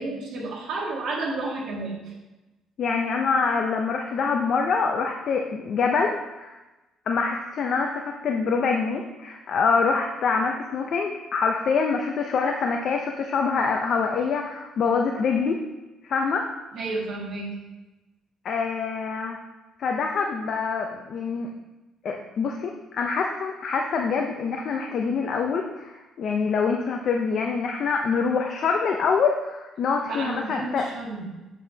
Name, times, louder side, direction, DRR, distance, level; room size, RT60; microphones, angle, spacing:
voice 1, 0.0-2.1 16.7-17.6 30.0-31.4, right 3 dB, 55° right, -5 dB, 2.0 m, -31 dB
voice 2, 2.8-6.6 7.1-15.6 16.0-16.5 18.4-19.4 19.8-21.5 22.0-30.9, left 5 dB, 45° left, 2 dB, 0.5 m, -25 dB
7.9 x 7.0 x 2.8 m, 1.1 s
cardioid pair, 160°, 0 cm